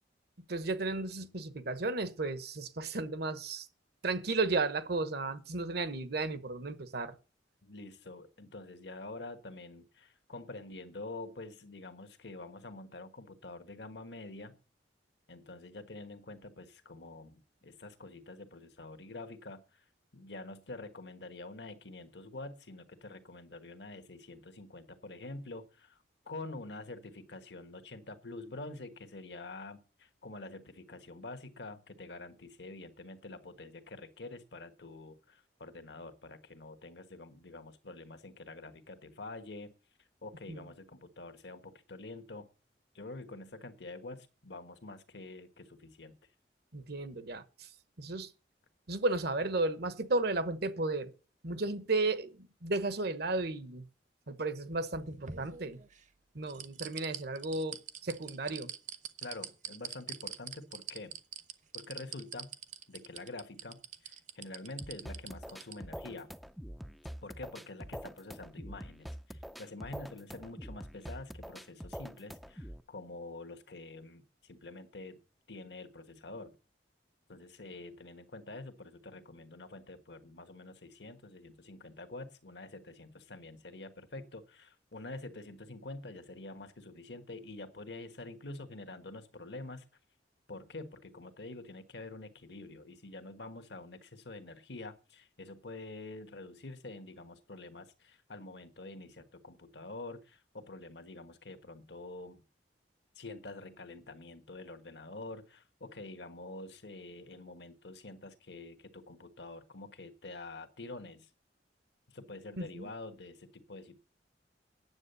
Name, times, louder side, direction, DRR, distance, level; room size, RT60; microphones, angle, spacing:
voice 1, 0.5-3.7 4.0-7.1 40.5-40.6 46.7-47.7 48.0-48.3 48.9-51.1 51.4-53.9 54.3-55.8 56.3-58.7 112.6-112.9, right 3 dB, 60° right, 1.1 m, -34 dB
voice 2, 7.6-14.6 15.3-19.8 20.1-26.0 26.2-39.7 40.2-42.5 42.9-46.1 59.2-61.1 61.7-62.5 62.9-66.3 67.2-75.2 75.5-76.6 77.3-89.8 90.5-102.4 103.1-111.3 112.1-114.0, left 2 dB, 70° left, 1.3 m, -47 dB
sound 1, 54.7-56.0 56.5-65.8 66.1-66.2, right 8 dB, 45° right, 0.9 m, -43 dB
sound 2, 64.8-72.8, equal, ahead, 0.5 m, -45 dB
9.7 x 7.7 x 6.7 m
head